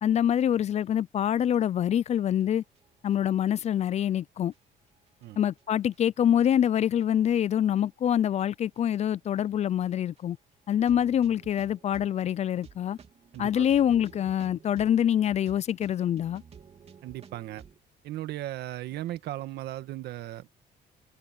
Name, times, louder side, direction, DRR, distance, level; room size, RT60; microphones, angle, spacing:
voice 1, 0.0-2.6 3.0-4.5 5.4-10.4 10.7-13.0 13.4-16.4, left 10 dB, 40° left, 0.4 m, -25 dB
sound 1, 2.4-3.1 3.5-3.6 4.2-4.3 4.5-4.6 5.1-6.0 6.6-7.0 7.3-7.4 8.0-8.5 8.7-8.8 9.1-9.2 9.8-9.9 10.2-10.3 10.7-17.8, right 6 dB, 35° right, 3.2 m, -52 dB
voice 2, 13.3-13.7 17.0-17.6 18.0-20.5, right 14 dB, 75° right, 1.6 m, -37 dB
cardioid pair, 110°, 17 cm